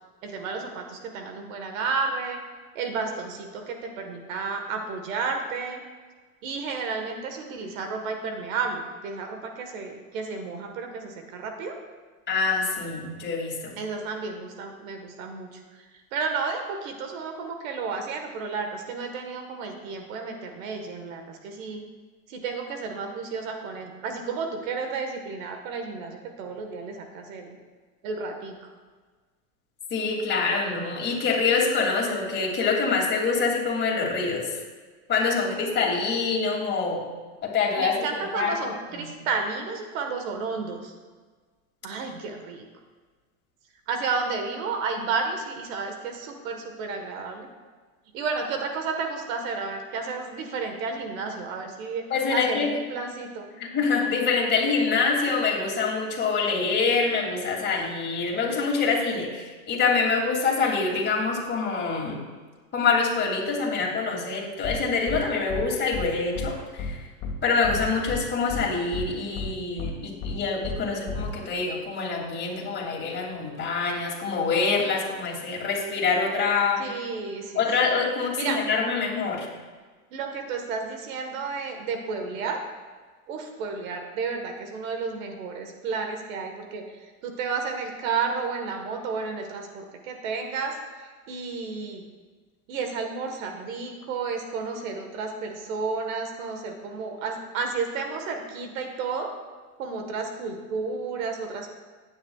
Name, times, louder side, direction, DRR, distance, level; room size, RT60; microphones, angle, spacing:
voice 1, 0.2-2.4 2.8-5.8 6.4-11.8 13.8-15.6 16.1-21.8 22.3-27.6 28.0-28.7 37.8-40.9 41.8-42.7 43.9-47.5 48.1-53.5 76.8-77.7 78.4-78.6 80.1-82.6 83.3-92.0 92.7-99.3 99.8-101.7, right 4 dB, 65° right, 5 dB, 1.6 m, -32 dB
voice 2, 12.3-13.8 29.9-34.4 35.1-37.0 37.4-37.9 38.3-38.5 38.9-39.1 42.1-42.2 52.1-52.7 53.6-62.2 62.7-67.0 67.4-76.9 77.5-79.5, left 4 dB, 25° left, -2 dB, 2.7 m, -25 dB
sound 1, 64.6-64.8 65.1-65.2 65.5-65.6 65.9-66.1 66.3-66.5 66.8-66.9 67.2-67.3 67.6-68.2 68.5-68.6 68.9-69.0 69.3-69.5 69.8-69.9 70.2-70.3 70.6-70.8 71.1-71.3, left 5 dB, 40° left, 2.0 m, -31 dB
15.5 x 9.7 x 2.4 m, 1.4 s
supercardioid pair, 130°, 44 cm